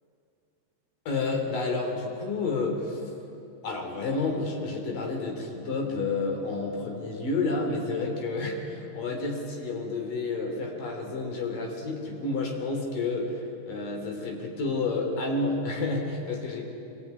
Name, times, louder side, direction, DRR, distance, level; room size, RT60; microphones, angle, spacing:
voice 1, 1.1-3.0 3.6-16.6, left 3 dB, 60° left, 2 dB, 4.9 m, -30 dB
25.0 x 20.0 x 9.6 m, 2.7 s
omnidirectional pair, 4.5 m